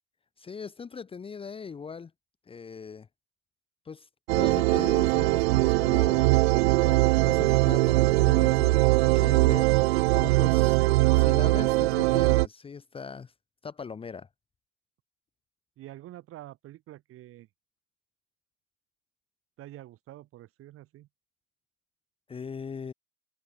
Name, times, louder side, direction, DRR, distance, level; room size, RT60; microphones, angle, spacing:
voice 1, 0.4-2.1 2.5-3.1 3.9-4.1 4.3-6.3 6.8-9.7 10.1-10.8 11.1-13.3 13.6-14.3 22.3-22.9, left 5 dB, 15° left, 1.8 m, -40 dB
sound 1, 4.3-12.5, right 22 dB, 60° right, 0.5 m, -21 dB
voice 2, 15.8-17.5 19.6-21.1, right 15 dB, 35° right, 5.4 m, -47 dB
hypercardioid pair, 120°, 36 cm